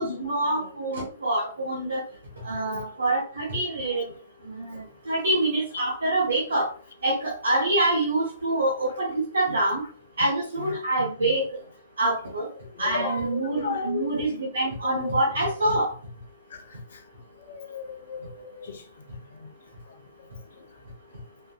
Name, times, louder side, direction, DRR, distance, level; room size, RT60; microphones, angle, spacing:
voice 1, 0.0-2.0 2.4-4.0 4.4-6.7 7.0-9.8 10.2-11.5 12.0-12.5 12.8-15.9, right 2 dB, 75° right, 1.1 m, -26 dB
voice 2, 12.8-14.1 14.8-15.2 16.5-16.6 17.5-18.8, left 6 dB, 60° left, 0.6 m, -34 dB
4.3 x 2.6 x 2.4 m
figure-of-eight pair, 115°, 0 cm